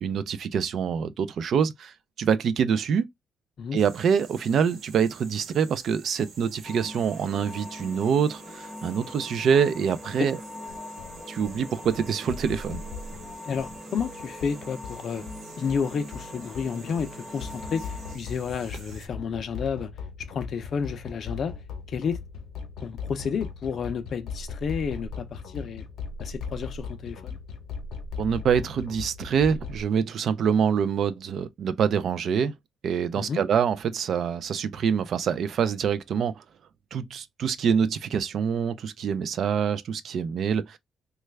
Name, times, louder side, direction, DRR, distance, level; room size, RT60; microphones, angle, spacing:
voice 1, 0.0-3.1 3.7-10.4 11.3-12.8 28.2-32.5 32.8-36.4 36.9-40.8, right 7 dB, 50° right, 0.4 m, -25 dB
sound 1, 3.8-19.1, right 4 dB, 70° right, 1.0 m, -49 dB
sound 2, 6.6-18.2, left 1 dB, 5° left, 0.7 m, -42 dB
sound 3, 10.7-29.8, left 5 dB, 65° left, 0.8 m, -39 dB
voice 2, 13.4-15.2 15.6-19.9 20.3-21.5 21.9-22.2 22.8-25.8 26.2-27.4 33.1-33.4, left 6 dB, 45° left, 0.5 m, -31 dB
3.2 x 2.3 x 3.1 m
cardioid pair, 170°, 0 cm